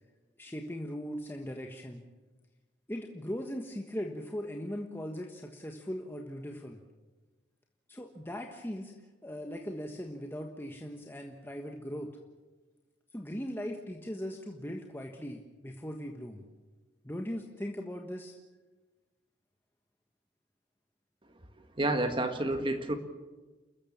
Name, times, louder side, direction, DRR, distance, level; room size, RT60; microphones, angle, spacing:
voice 1, 0.4-2.0 2.9-6.8 7.9-8.9 9.2-12.1 13.1-16.4 17.0-18.3, equal, 10° left, 2 dB, 1.4 m, -39 dB
voice 2, 21.8-23.0, right 1 dB, 25° right, 7 dB, 1.7 m, -29 dB
30.0 x 14.0 x 7.2 m, 1.2 s
head